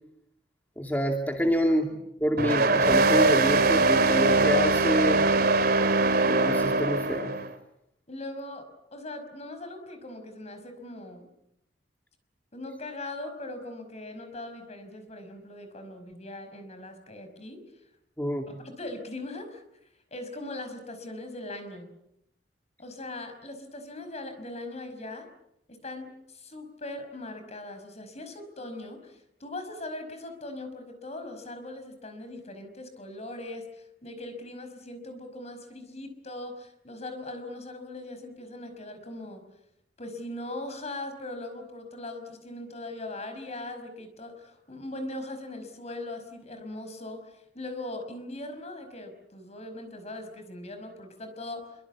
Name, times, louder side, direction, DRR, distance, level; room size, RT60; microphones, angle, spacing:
voice 1, 0.8-1.9 2.2-5.2 6.2-7.3 18.2-18.5, equal, 10° left, 2 dB, 2.5 m, -27 dB
voice 2, 1.4-2.1 8.1-11.3 12.5-17.6 18.5-19.6 20.1-21.9 22.8-25.3 25.7-39.4 40.0-51.8, left 2 dB, 40° left, 8 dB, 5.3 m, -40 dB
sound 1, 2.4-7.5, right 3 dB, 60° right, 2.7 m, -22 dB
26.0 x 24.0 x 8.5 m, 0.82 s
head